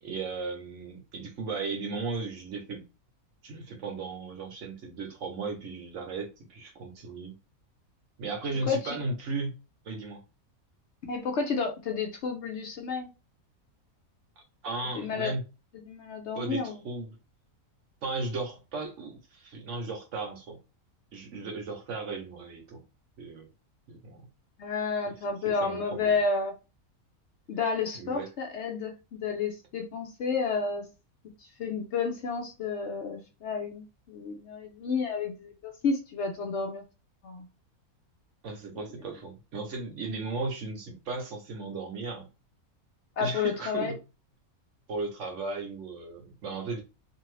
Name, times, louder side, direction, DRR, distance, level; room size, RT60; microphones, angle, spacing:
voice 1, 0.0-2.8 3.4-7.4 8.2-9.5 9.8-10.2 14.4-15.4 16.3-17.2 18.0-20.6 21.1-22.8 23.2-23.5 23.9-24.3 25.0-25.1 25.4-26.2 28.0-28.3 38.4-42.3 43.2-44.0 44.9-46.8, right 3 dB, 60° right, 1.0 m, -36 dB
voice 2, 8.7-9.0 11.1-13.1 15.0-15.3 15.7-16.8 24.6-26.5 27.5-30.8 31.4-36.8 37.2-37.4 43.2-43.9, left 5 dB, 65° left, 0.8 m, -31 dB
2.6 x 2.6 x 3.1 m
omnidirectional pair, 1.5 m